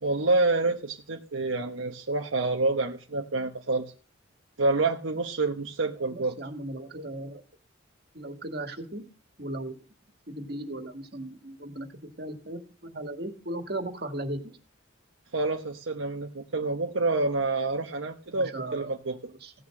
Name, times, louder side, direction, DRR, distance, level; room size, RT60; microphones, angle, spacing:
voice 1, 0.0-3.9 4.6-6.4 15.3-19.2, right 3 dB, 75° right, 3 dB, 1.0 m, -28 dB
voice 2, 6.0-7.4 8.1-9.0 9.4-9.8 10.3-14.6 18.3-19.0 19.3-19.5, right 1 dB, 50° right, 6 dB, 2.0 m, -37 dB
16.0 x 6.2 x 7.7 m, 0.39 s
head